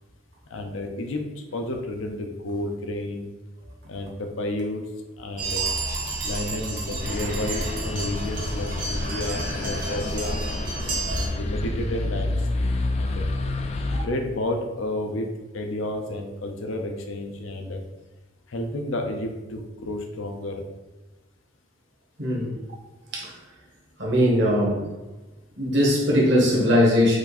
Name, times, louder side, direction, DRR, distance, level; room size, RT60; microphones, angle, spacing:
voice 1, 0.5-1.2 1.5-3.3 3.9-4.9 5.2-5.7 6.2-10.4 11.1-12.3 12.9-13.3 14.0-15.3 15.5-17.8 18.5-20.6, left 1 dB, 80° left, 4 dB, 0.6 m, -31 dB
sound 1, 5.4-11.3, right 2 dB, 45° right, 1.0 m, -30 dB
sound 2, 7.0-14.1, left 2 dB, 30° left, 0.3 m, -29 dB
voice 2, 22.2-22.5 23.1-23.3 24.0-24.8 25.6-27.2, equal, 60° right, -4 dB, 1.3 m, -20 dB
4.9 x 2.6 x 4.1 m, 1.2 s
head